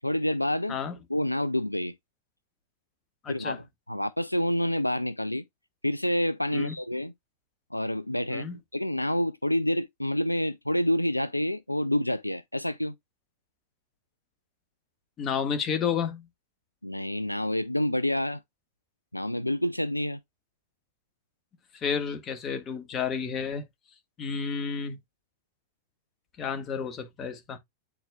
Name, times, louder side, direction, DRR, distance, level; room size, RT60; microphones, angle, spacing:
voice 1, 0.0-0.8 1.1-1.9 3.3-5.4 5.8-7.1 7.7-13.0 16.8-18.4 19.1-20.2, left 1 dB, 85° left, 0.4 m, -28 dB
voice 2, 3.2-3.6 6.5-6.8 8.3-8.6 15.2-16.3 21.7-23.6 24.2-25.0 26.4-27.6, left 6 dB, 25° left, 1.7 m, -31 dB
8.9 x 4.5 x 2.4 m
figure-of-eight pair, 90°, 0 cm